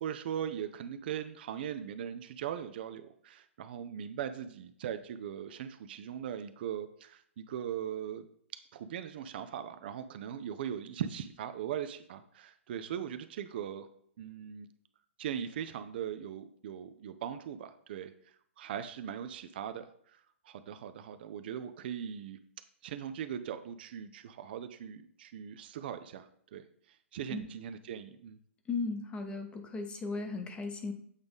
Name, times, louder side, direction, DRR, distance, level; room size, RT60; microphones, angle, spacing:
voice 1, 0.0-8.3 8.5-13.9 14.2-14.7 15.2-18.1 18.6-20.2 20.4-22.4 22.8-26.6 27.1-28.4, right 9 dB, 50° right, 10 dB, 0.4 m, -39 dB
voice 2, 28.7-30.9, left 4 dB, 15° left, 6 dB, 0.8 m, -36 dB
8.0 x 3.8 x 3.5 m, 0.65 s
hypercardioid pair, 125°, 7 cm